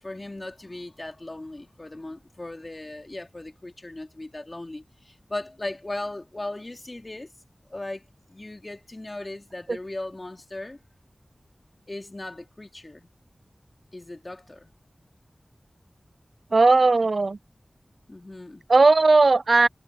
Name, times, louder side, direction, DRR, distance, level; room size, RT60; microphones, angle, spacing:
voice 1, 0.0-7.3 7.7-10.8 11.9-13.1 13.9-14.7 18.1-18.6, left 2 dB, 35° left, 2.6 m, -37 dB
voice 2, 16.5-17.4 18.7-19.7, right 3 dB, 65° right, 0.3 m, -17 dB
wide cardioid pair, 70°, 0 cm